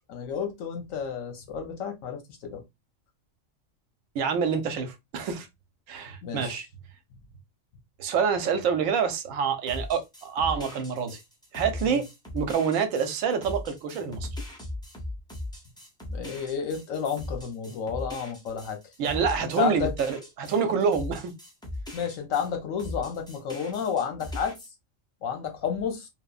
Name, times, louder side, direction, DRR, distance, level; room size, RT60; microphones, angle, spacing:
voice 1, 0.1-2.6 6.2-6.5 11.8-12.0 16.1-18.8 19.6-19.9 21.9-24.5 25.2-26.1, left 7 dB, 85° left, 1.2 m, -31 dB
voice 2, 4.1-5.5 5.9-6.7 8.0-11.2 11.5-12.1 12.3-14.3 19.0-21.4, right 6 dB, 85° right, 1.0 m, -27 dB
sound 1, 9.7-22.5 22.8-24.7, left 1 dB, 5° left, 0.5 m, -39 dB
3.0 x 2.1 x 2.3 m
omnidirectional pair, 1.4 m